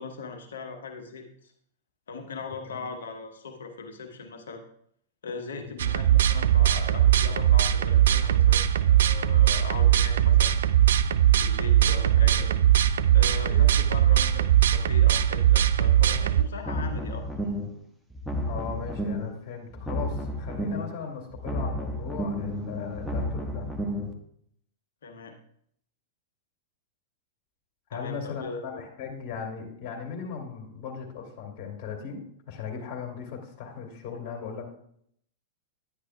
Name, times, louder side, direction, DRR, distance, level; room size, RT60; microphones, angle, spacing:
voice 1, 0.0-1.5 2.1-4.6 5.2-10.6 11.4-12.5 13.1-17.2 25.0-25.4 27.9-28.8, left 4 dB, 75° left, 5 dB, 1.0 m, -39 dB
sound 1, 5.8-16.4, right 11 dB, 70° right, 0.4 m, -20 dB
voice 2, 11.8-12.6 13.2-13.9 18.5-23.7 27.9-34.6, left 6 dB, 45° left, 2 dB, 2.4 m, -38 dB
sound 2, 16.5-17.8 18.1-19.4 19.7-21.0 21.3-24.1, equal, ahead, 1.2 m, -32 dB
11.0 x 10.0 x 2.3 m, 0.67 s
figure-of-eight pair, 100°, 0 cm